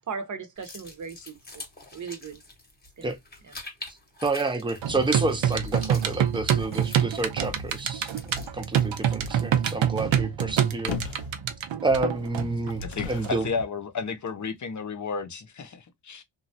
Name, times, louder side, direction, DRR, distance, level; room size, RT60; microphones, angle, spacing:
voice 1, 0.0-1.6 1.9-2.4 3.0-3.1, right 5 dB, 40° right, 0.8 m, -37 dB
sound 1, 0.6-10.0, left 2 dB, 20° left, 0.9 m, -46 dB
voice 2, 3.9-10.9 11.8-13.5, right 3 dB, 10° right, 0.5 m, -29 dB
sound 2, 4.8-13.6, right 9 dB, 85° right, 0.7 m, -27 dB
sound 3, 10.9-11.4 12.2-13.5 14.3-14.4, left 6 dB, 80° left, 0.6 m, -36 dB
voice 3, 12.8-16.2, left 5 dB, 40° left, 0.6 m, -33 dB
3.1 x 2.3 x 2.5 m
wide cardioid pair, 140°, 45 cm